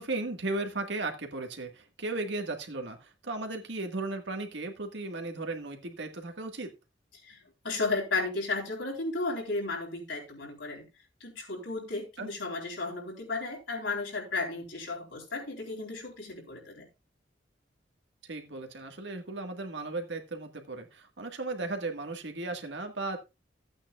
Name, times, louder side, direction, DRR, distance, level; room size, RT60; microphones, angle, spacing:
voice 1, 0.0-6.7 12.2-12.3 18.3-23.2, right 2 dB, 70° right, 4 dB, 1.7 m, -36 dB
voice 2, 7.6-10.9 11.2-16.9, left 3 dB, 75° left, 0 dB, 3.8 m, -34 dB
14.5 x 8.8 x 2.4 m, 0.26 s
head